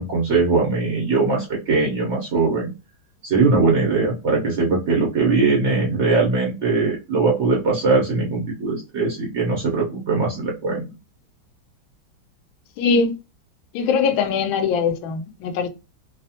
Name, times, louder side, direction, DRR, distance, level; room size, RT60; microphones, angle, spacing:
voice 1, 0.0-2.7 3.2-10.8, right 3 dB, 75° right, 0.6 m, -20 dB
voice 2, 12.8-13.1 13.7-15.7, left 5 dB, 80° left, 1.4 m, -21 dB
3.3 x 2.0 x 2.7 m
omnidirectional pair, 2.2 m